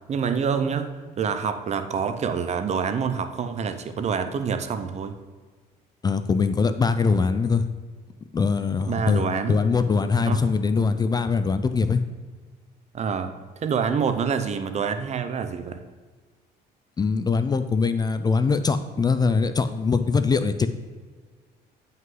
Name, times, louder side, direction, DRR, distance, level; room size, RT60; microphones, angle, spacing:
voice 1, 0.1-5.1 8.9-9.6 10.2-10.5 12.9-13.3 13.6-15.8, right 6 dB, 40° right, 9 dB, 0.7 m, -26 dB
voice 2, 6.0-7.6 8.3-9.2 9.5-12.0 17.0-20.7, left 4 dB, 25° left, 10 dB, 0.4 m, -22 dB
9.3 x 5.5 x 3.8 m, 1.5 s
cardioid pair, 110°, 17 cm